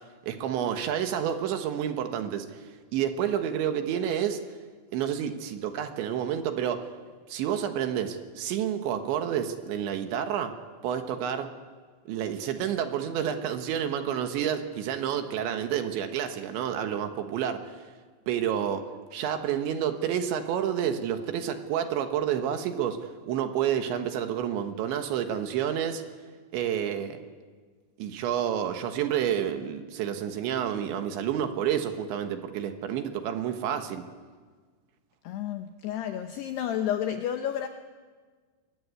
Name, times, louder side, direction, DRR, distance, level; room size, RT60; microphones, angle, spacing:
voice 1, 0.2-2.6 2.9-4.4 4.9-6.9 7.3-10.5 10.8-11.5 12.1-17.6 18.3-18.8 19.1-23.0 23.3-26.0 26.5-27.2 28.0-34.0, right 9 dB, 70° right, 7 dB, 3.4 m, -29 dB
voice 2, 35.2-37.7, left 10 dB, 80° left, 7 dB, 2.4 m, -31 dB
24.0 x 22.0 x 9.6 m, 1.5 s
omnidirectional pair, 5.9 m